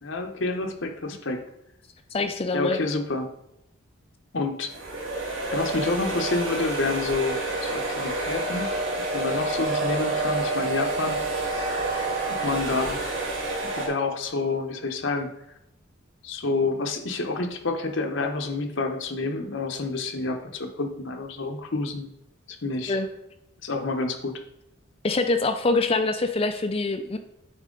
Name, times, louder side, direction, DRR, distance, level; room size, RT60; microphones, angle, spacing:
voice 1, 0.0-1.4 2.5-3.3 4.3-4.7 5.5-8.7 9.1-11.2 12.2-13.0 13.6-15.3 16.2-22.1 22.5-23.0 23.6-24.4, left 3 dB, 60° left, 4 dB, 0.8 m, -28 dB
voice 2, 2.1-2.8 22.9-23.1 25.0-27.2, left 3 dB, 25° left, 7 dB, 0.4 m, -24 dB
sound 1, 4.7-13.9, right 2 dB, 65° right, 2.2 m, -28 dB
8.9 x 4.3 x 3.7 m, 0.85 s
head